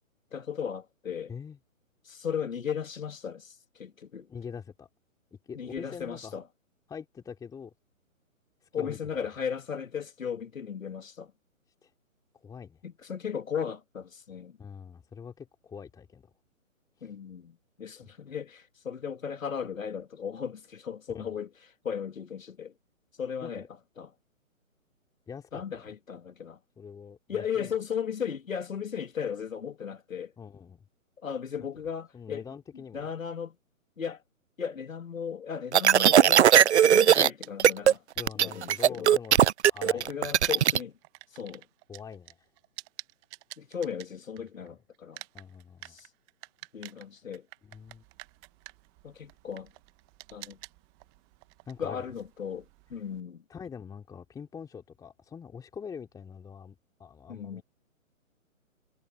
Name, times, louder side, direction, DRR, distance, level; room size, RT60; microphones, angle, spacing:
voice 1, 0.3-1.3 2.0-4.3 5.5-6.4 8.7-11.3 12.8-14.6 17.0-21.5 21.8-22.7 23.2-23.6 24.0-24.1 25.5-26.6 27.3-30.3 31.2-32.4 32.9-33.6 34.0-34.2 34.6-38.0 38.4-39.2 39.8-40.9 41.3-41.7 43.6-45.2 45.8-46.1 46.7-47.4 49.0-49.7 50.3-50.6 51.8-53.4 57.3-57.6, left 7 dB, 70° left, 2.7 m, -36 dB
voice 2, 4.3-4.9 5.4-6.4 6.9-7.7 8.6-9.1 11.8-11.9 12.3-12.8 14.6-16.3 17.0-17.1 18.0-18.1 21.1-21.4 23.4-23.7 25.3-25.9 26.8-27.7 30.4-30.8 32.1-33.1 38.2-39.4 39.7-40.4 41.9-42.4 44.6-44.7 45.3-46.0 47.6-48.0 51.7-52.1 53.5-57.6, left 6 dB, 10° left, 3.3 m, -44 dB
sound 1, 35.7-37.3 37.6-37.9 38.2-40.8, right 10 dB, 55° right, 0.5 m, -19 dB
sound 2, 36.5-44.7 44.9-53.2, right 28 dB, 20° right, 1.5 m, -48 dB
figure-of-eight pair, 140°, 42 cm